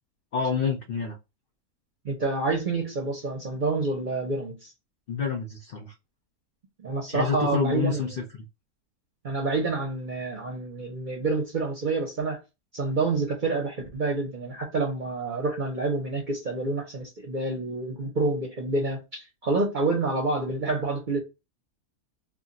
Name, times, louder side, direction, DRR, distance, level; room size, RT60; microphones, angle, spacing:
voice 1, 0.3-1.2 5.1-5.9 7.1-8.4, left 6 dB, 65° left, 0.5 m, -28 dB
voice 2, 2.0-4.7 6.8-8.2 9.2-12.4 12.7-21.2, right 3 dB, 45° right, 0.7 m, -28 dB
2.5 x 2.2 x 3.7 m
omnidirectional pair, 1.6 m